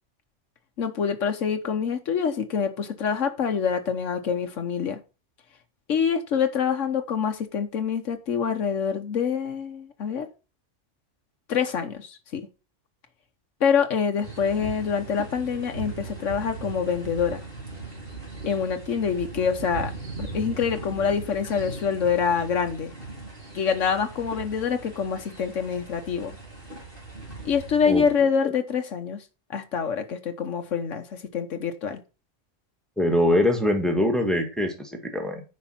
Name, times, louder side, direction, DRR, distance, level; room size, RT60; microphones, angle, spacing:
voice 1, 0.8-5.0 5.9-10.3 11.5-12.4 13.6-17.4 18.5-19.9 20.2-22.9 23.5-26.4 27.4-29.2 29.5-32.0, left 6 dB, 90° left, 1.4 m, -26 dB
sound 1, 14.2-28.2, right 3 dB, 50° right, 3.2 m, -39 dB
voice 2, 33.0-35.4, left 1 dB, ahead, 1.9 m, -23 dB
9.7 x 5.3 x 5.8 m
omnidirectional pair, 1.2 m